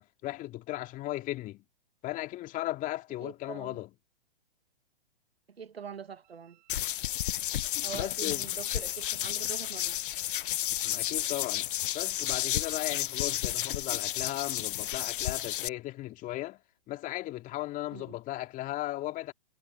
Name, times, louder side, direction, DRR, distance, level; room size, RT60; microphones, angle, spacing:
voice 1, 0.0-1.6 2.0-3.9 7.9-8.4 10.8-11.7 11.9-16.6 16.9-19.3, left 16 dB, 25° left, 2.6 m, -36 dB
voice 2, 3.2-3.8 5.5-6.6 7.8-10.0 17.9-18.2, right 7 dB, 90° right, 1.3 m, -43 dB
Wind instrument woodwind instrument, 6.2-11.4, right 20 dB, 45° right, 5.7 m, -63 dB
sound 1, 6.7-15.7, left 12 dB, 60° left, 0.6 m, -32 dB
hypercardioid pair, 125°, 30 cm